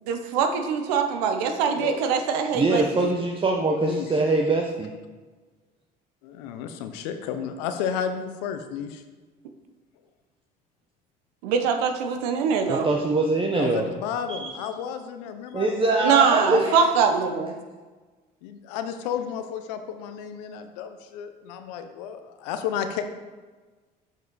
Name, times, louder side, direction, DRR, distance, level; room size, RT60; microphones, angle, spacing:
voice 1, 0.1-3.1 11.4-12.9 16.0-17.5, right 6 dB, 85° right, 6 dB, 0.8 m, -23 dB
voice 2, 2.5-4.9 12.7-13.9 14.3-14.5 15.5-16.8, right 2 dB, 25° right, 2 dB, 0.7 m, -23 dB
voice 3, 6.2-9.0 13.6-16.4 16.7-16.8 18.4-23.0, left 8 dB, 85° left, 8 dB, 0.7 m, -32 dB
7.3 x 5.4 x 4.0 m, 1.3 s
supercardioid pair, 75°, 20 cm